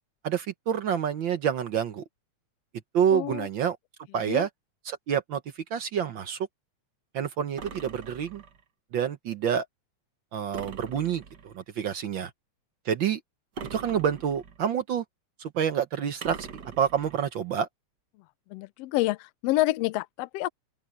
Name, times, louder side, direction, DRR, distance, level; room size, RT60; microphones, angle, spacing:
voice 1, 0.2-2.0 2.9-3.8 4.1-4.5 4.8-6.5 7.1-8.4 8.9-9.7 10.3-12.3 12.8-13.2 13.7-15.0 15.4-16.5 16.8-17.7, right 8 dB, 70° right, 1.1 m, -28 dB
voice 2, 3.1-3.5 4.3-4.5 18.5-20.5, left 17 dB, 80° left, 1.4 m, -28 dB
sound 1, 7.6-8.6 10.5-11.6 13.6-14.7 16.2-17.3, right 6 dB, 50° right, 1.4 m, -42 dB
open air
omnidirectional pair, 3.4 m